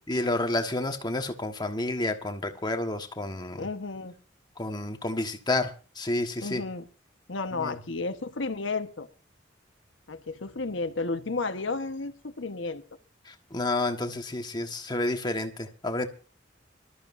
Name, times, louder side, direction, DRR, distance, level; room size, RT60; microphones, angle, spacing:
voice 1, 0.1-3.6 4.6-6.6 7.6-7.8 13.3-16.1, left 2 dB, 20° left, 1.4 m, -30 dB
voice 2, 3.6-4.1 6.4-6.9 7.3-9.1 10.1-12.8, left 3 dB, 85° left, 1.2 m, -32 dB
25.5 x 13.0 x 2.6 m
head